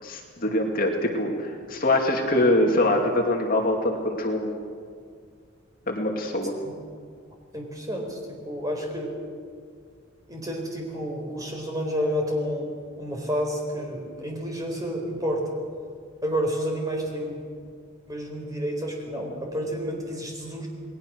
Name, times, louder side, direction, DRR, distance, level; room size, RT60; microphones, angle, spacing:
voice 1, 0.0-4.6 5.9-6.5, left 1 dB, 45° left, 1 dB, 2.4 m, -24 dB
voice 2, 7.5-9.1 10.3-15.6 16.2-17.3 18.1-20.7, equal, 15° right, 1 dB, 4.3 m, -30 dB
29.0 x 20.5 x 6.4 m, 2.1 s
head